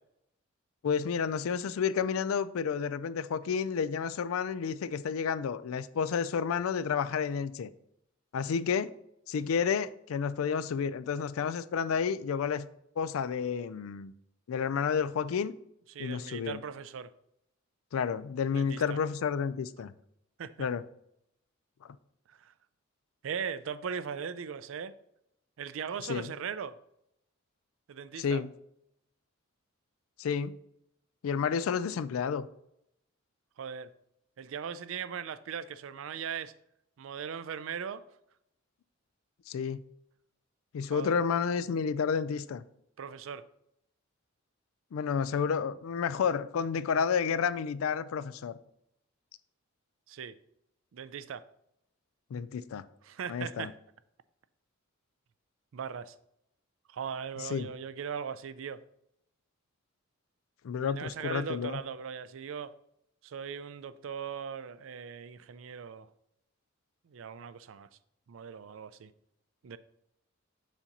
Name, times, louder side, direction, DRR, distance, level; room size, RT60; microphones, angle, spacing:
voice 1, 0.8-7.7 8.3-8.9 9.3-12.7 13.0-14.1 14.5-15.6 16.0-16.6 17.9-19.9 20.6-20.8 26.0-26.3 28.2-28.5 30.2-30.6 31.2-32.5 39.5-39.8 40.7-42.6 44.9-48.6 52.3-52.8 53.3-53.7 57.4-57.7 60.6-61.8, left 6 dB, 90° left, 0.4 m, -30 dB
voice 2, 15.9-17.1 18.5-19.0 20.4-20.7 22.4-22.5 23.2-24.9 25.6-26.7 27.9-28.4 33.6-33.9 34.4-36.5 37.0-38.0 40.9-41.2 43.0-43.4 50.1-50.3 50.9-51.4 53.0-53.7 55.7-56.1 56.9-58.8 60.8-62.7 63.2-66.1 67.1-67.9 68.3-69.1 69.6-69.8, right 7 dB, 70° right, 0.4 m, -39 dB
7.2 x 2.9 x 5.2 m
head